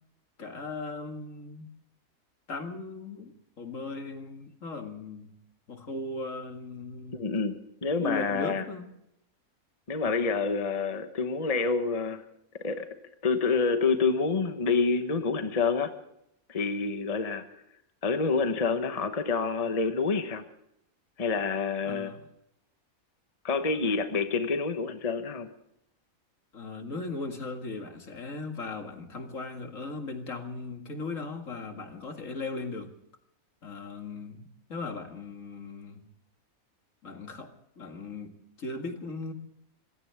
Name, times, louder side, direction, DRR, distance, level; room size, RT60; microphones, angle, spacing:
voice 1, 0.4-1.7 2.5-5.3 5.7-7.2 8.0-8.9 21.8-22.2 26.5-32.9 33.6-36.1 37.0-39.3, left 3 dB, 65° left, 5 dB, 2.4 m, -38 dB
voice 2, 7.1-8.6 9.9-12.2 12.6-12.9 13.2-15.9 16.5-17.4 18.0-20.4 21.2-22.1 23.4-25.5, left 4 dB, 30° left, 8 dB, 1.1 m, -27 dB
25.5 x 16.5 x 3.5 m, 0.78 s
omnidirectional pair, 1.5 m